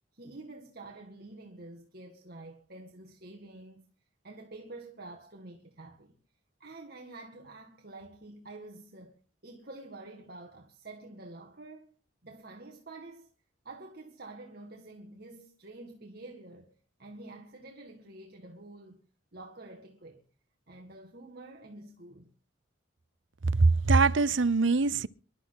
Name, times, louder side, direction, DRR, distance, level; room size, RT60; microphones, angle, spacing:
voice 1, 0.1-3.9 4.2-6.2 6.6-11.9 12.2-13.3 13.6-19.0 19.3-20.2 20.7-22.3, right 2 dB, 50° right, 1.9 m, -48 dB
voice 2, 23.4-25.1, right 3 dB, 65° right, 0.7 m, -23 dB
25.5 x 12.0 x 4.0 m
head